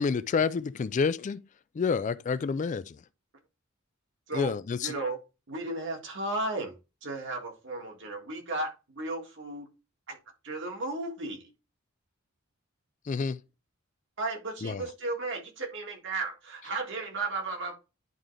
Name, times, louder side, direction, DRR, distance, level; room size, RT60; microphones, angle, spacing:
voice 1, 0.0-1.4 1.8-3.0 4.3-4.9 13.1-13.4 14.6-14.9, left 5 dB, 35° left, 0.3 m, -28 dB
voice 2, 4.8-5.2 5.5-6.7 7.0-9.7 10.1-10.2 10.4-11.4 14.2-17.8, right 2 dB, 60° right, 1.9 m, -34 dB
10.5 x 3.7 x 3.3 m
head